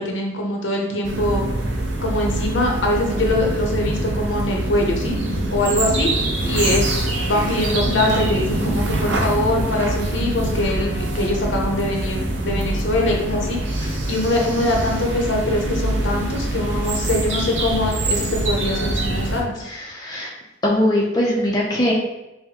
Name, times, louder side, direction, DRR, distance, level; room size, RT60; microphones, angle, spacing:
voice 1, 0.0-1.4 2.0-6.1 6.4-19.5, left 1 dB, 75° left, 0 dB, 0.8 m, -23 dB
sound 1, 1.0-19.4, right 1 dB, 65° right, 0.6 m, -24 dB
voice 2, 19.6-20.3 20.6-21.9, left 1 dB, 20° left, -3 dB, 0.5 m, -21 dB
5.7 x 2.1 x 2.8 m, 0.94 s
head